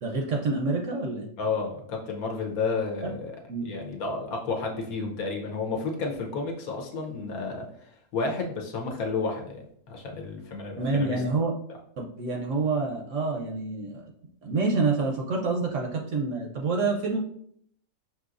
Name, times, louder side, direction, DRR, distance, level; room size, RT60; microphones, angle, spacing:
voice 1, 0.0-1.3 3.0-3.1 3.5-3.7 10.8-11.5 12.0-14.0 14.4-17.2, right 3 dB, 65° right, 0 dB, 0.8 m, -27 dB
voice 2, 1.4-3.3 3.6-11.2, left 4 dB, 65° left, 1 dB, 1.2 m, -31 dB
6.1 x 3.0 x 2.5 m, 0.67 s
omnidirectional pair, 1.7 m